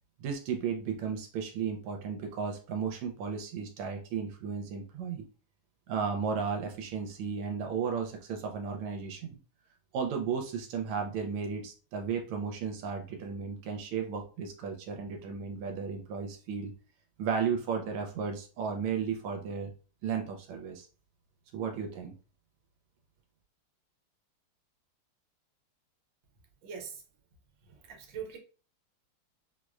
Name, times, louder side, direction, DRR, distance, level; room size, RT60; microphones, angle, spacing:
voice 1, 0.2-5.2 5.9-9.4 9.9-16.7 17.2-19.7 20.0-20.9 21.5-22.1, right 6 dB, 80° right, 1.5 m, -34 dB
voice 2, 26.6-27.0 27.7-28.4, right 7 dB, 65° right, 1.3 m, -42 dB
4.6 x 2.1 x 2.3 m
omnidirectional pair, 2.4 m